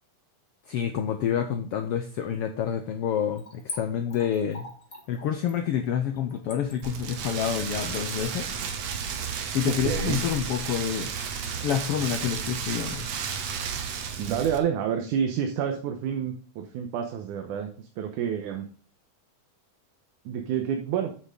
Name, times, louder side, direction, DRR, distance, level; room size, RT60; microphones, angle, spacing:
voice 1, 0.7-4.7 5.1-8.5 9.5-11.1 11.6-13.1, left 9 dB, 90° left, 7 dB, 1.3 m, -28 dB
Splash splatter / Trickle dribble, 3.4-9.8 10.1-10.2, left 2 dB, 20° left, 2.0 m, -43 dB
Rain, 6.8-14.6, right 6 dB, 60° right, 2.1 m, -32 dB
voice 2, 9.7-10.2 14.2-18.7 20.3-21.1, right 8 dB, 80° right, 4 dB, 2.4 m, -29 dB
8.4 x 8.1 x 3.7 m, 0.42 s
omnidirectional pair, 3.6 m